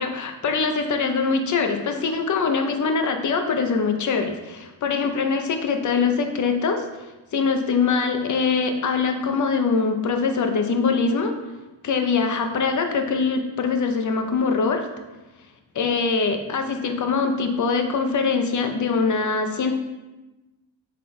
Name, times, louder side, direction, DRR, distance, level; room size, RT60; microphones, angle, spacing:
voice 1, 0.0-6.8 7.3-11.3 11.8-14.9 15.7-19.7, left 5 dB, 40° left, 5 dB, 0.7 m, -23 dB
7.9 x 3.8 x 3.2 m, 1.1 s
cardioid pair, 140°, 46 cm